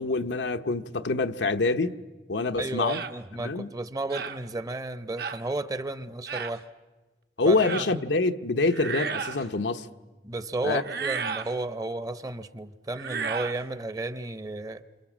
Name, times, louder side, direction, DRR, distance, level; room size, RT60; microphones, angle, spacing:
voice 1, 0.0-2.0 2.3-3.0 3.4-3.7 7.4-9.9 10.6-10.8, left 3 dB, 90° left, 1.0 m, -26 dB
voice 2, 2.6-6.6 7.4-8.0 10.2-14.8, right 2 dB, 20° right, 0.8 m, -33 dB
sound 1, 2.8-3.1 4.1-4.4 5.2-5.4 6.3-6.6 7.6-7.9 8.7-9.4 10.8-11.5 12.9-13.6, right 6 dB, 65° right, 1.2 m, -33 dB
29.5 x 26.5 x 7.4 m
head